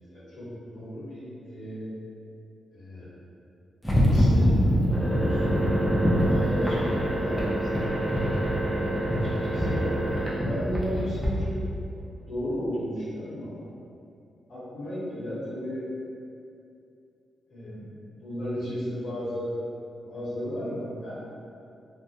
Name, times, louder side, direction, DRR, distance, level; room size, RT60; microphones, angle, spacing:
voice 1, 0.1-1.8 2.7-3.1 4.0-4.5 4.9-5.5 6.2-7.9 8.7-9.9 10.3-11.5 11.8-13.7 14.5-15.8 17.5-17.8 18.2-19.5 20.0-21.2, equal, 60° left, -12 dB, 1.0 m, -35 dB
sound 1, 3.8-11.3, equal, ahead, 0.5 m, -24 dB
2.2 x 2.1 x 2.7 m, 2.6 s
wide cardioid pair, 125°, 0 cm